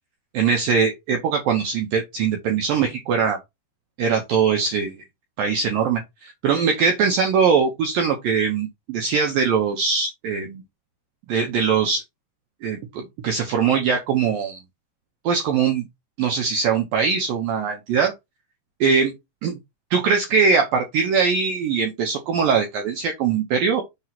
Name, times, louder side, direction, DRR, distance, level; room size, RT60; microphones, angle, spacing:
voice 1, 0.3-3.4 4.0-4.9 5.4-10.6 11.3-12.0 12.6-14.6 15.2-15.8 16.2-18.1 18.8-19.1 19.4-19.6 19.9-23.8, right 6 dB, 75° right, 2.0 m, -21 dB
7.2 x 3.0 x 5.8 m
omnidirectional pair, 5.5 m